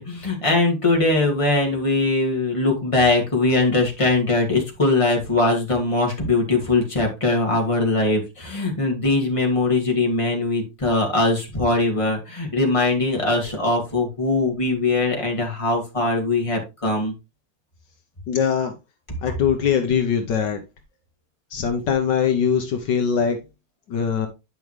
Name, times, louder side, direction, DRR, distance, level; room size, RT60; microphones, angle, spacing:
voice 1, 0.0-17.1, left 2 dB, 15° left, 1 dB, 2.3 m, -21 dB
voice 2, 18.3-18.7 19.2-20.6 21.5-23.4 23.9-24.3, left 7 dB, 70° left, 6 dB, 1.6 m, -21 dB
9.3 x 5.5 x 3.1 m, 0.25 s
omnidirectional pair, 2.0 m